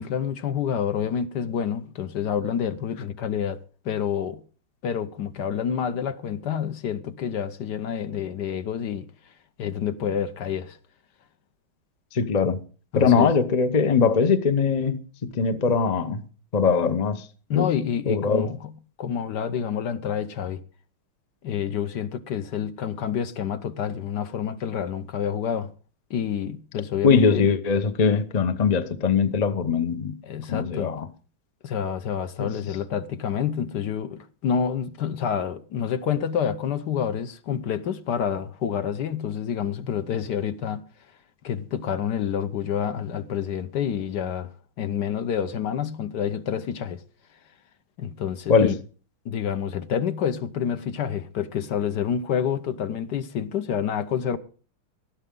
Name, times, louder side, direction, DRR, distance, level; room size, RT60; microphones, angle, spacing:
voice 1, 0.0-3.6 3.8-4.4 4.8-9.1 9.6-10.8 12.9-13.3 17.5-18.7 19.0-20.6 21.4-25.7 26.1-27.5 30.2-30.9 31.6-40.8 41.4-44.5 44.8-47.0 48.0-48.8 49.2-54.4, left 8 dB, 60° left, 1.3 m, -28 dB
voice 2, 12.1-12.6 13.0-15.0 15.3-16.2 16.5-17.2 17.5-17.7 18.1-18.5 27.0-30.1 30.5-31.1 32.4-32.5 48.5-48.7, left 5 dB, 45° left, 0.5 m, -21 dB
19.0 x 13.0 x 3.8 m
omnidirectional pair, 2.3 m